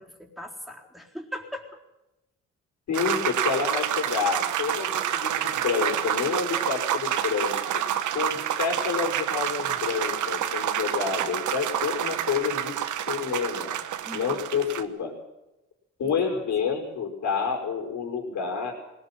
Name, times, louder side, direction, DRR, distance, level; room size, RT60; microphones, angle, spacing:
voice 1, 0.0-1.7 14.0-14.5 16.0-16.4, equal, ahead, -1 dB, 3.9 m, -40 dB
voice 2, 2.9-7.6 8.1-12.8 13.1-13.7 14.1-15.1 16.0-18.7, left 6 dB, 65° left, 2 dB, 5.5 m, -28 dB
sound 1, 2.9-14.8, right 10 dB, 75° right, 1.4 m, -28 dB
21.0 x 18.5 x 7.6 m, 0.96 s
cardioid pair, 90°, 30 cm